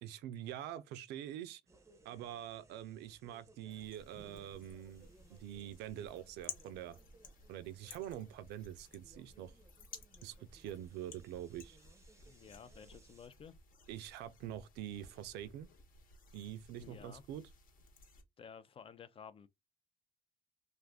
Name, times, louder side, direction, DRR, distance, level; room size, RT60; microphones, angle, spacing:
voice 1, 0.0-1.6 2.0-7.0 7.5-9.5 10.2-11.8 13.9-15.7 16.3-17.4, right 11 dB, 80° right, 0.4 m, -45 dB
sound 1, 1.7-13.3, right 3 dB, 15° right, 0.6 m, -64 dB
sound 2, 3.7-18.2, left 5 dB, 60° left, 1.0 m, -56 dB
voice 2, 12.3-13.5 16.7-17.2 18.4-19.5, left 7 dB, 35° left, 0.4 m, -53 dB
2.5 x 2.4 x 3.4 m
cardioid pair, 110°, 17 cm